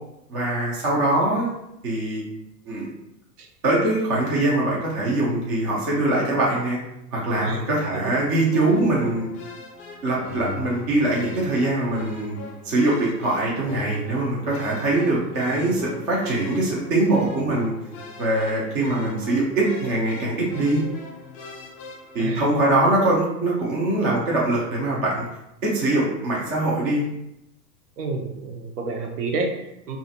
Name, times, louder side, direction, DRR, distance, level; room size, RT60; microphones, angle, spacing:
voice 1, 0.3-1.5 1.8-2.2 2.6-2.9 3.6-6.8 7.1-9.3 10.0-12.3 12.6-17.7 18.2-20.8 22.1-25.2 25.6-27.0, right 2 dB, 20° right, -5 dB, 0.3 m, -22 dB
sound 1, 8.5-22.2, left 4 dB, 30° left, 0.5 m, -39 dB
voice 2, 28.0-30.0, right 3 dB, 65° right, 2 dB, 0.7 m, -29 dB
2.5 x 2.4 x 2.7 m, 0.84 s
hypercardioid pair, 110°, 50 cm